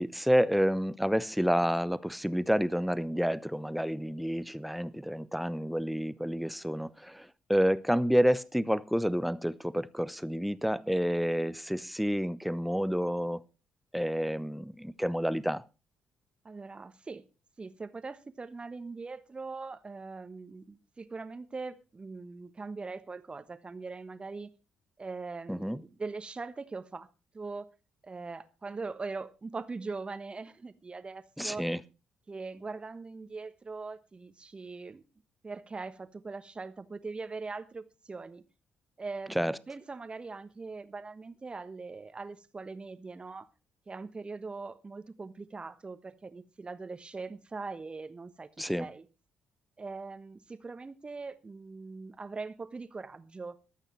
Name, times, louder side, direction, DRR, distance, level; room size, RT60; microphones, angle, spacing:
voice 1, 0.0-13.4 13.9-15.6 25.5-25.8 31.4-31.8 39.3-39.6 48.6-48.9, equal, ahead, 0.8 m, -29 dB
voice 2, 16.4-17.2 17.6-24.5 25.0-27.1 27.3-27.6 28.0-31.7 32.3-35.0 35.4-38.4 39.0-43.5 43.9-48.5 48.8-49.0 49.8-53.6, right 4 dB, 25° right, 1.3 m, -41 dB
22.5 x 9.0 x 3.2 m
figure-of-eight pair, 40°, 4 cm